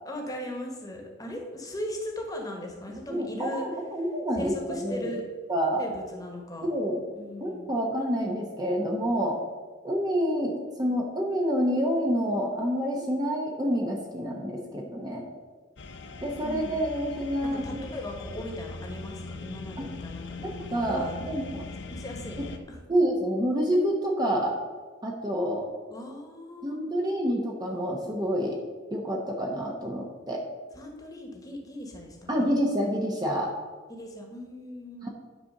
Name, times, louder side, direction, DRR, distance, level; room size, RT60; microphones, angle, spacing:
voice 1, 0.0-3.8 4.3-5.2 5.8-6.7 7.1-7.8 16.4-16.8 17.4-20.5 20.9-21.2 21.9-22.8 25.9-26.8 30.7-32.5 33.9-35.1, left 1 dB, 20° left, 1 dB, 1.5 m, -38 dB
voice 2, 3.1-5.1 5.5-5.8 6.7-7.0 7.4-9.4 9.8-15.2 16.2-17.9 19.8-19.9 20.4-21.7 22.4-22.5 22.9-24.5 25.0-25.7 26.6-28.6 28.9-30.4 32.3-33.5 35.0-35.1, equal, 20° right, 0 dB, 1.0 m, -28 dB
sound 1, 15.8-22.6, left 3 dB, 60° left, 0.7 m, -40 dB
10.0 x 4.3 x 6.6 m, 1.4 s
head